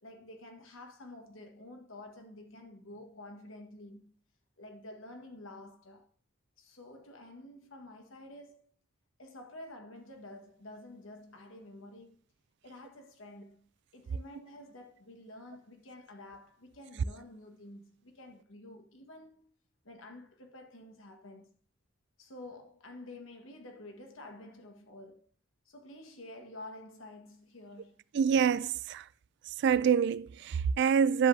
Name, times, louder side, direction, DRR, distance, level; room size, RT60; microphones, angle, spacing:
voice 1, 0.0-4.1 4.6-6.1 6.6-8.6 9.2-12.2 12.6-19.5 19.8-21.6 22.2-25.3 25.6-28.0, left 1 dB, 75° left, 1.6 m, -50 dB
voice 2, 28.1-29.0 29.6-31.3, right 7 dB, 55° right, 0.3 m, -26 dB
10.0 x 7.6 x 2.7 m
head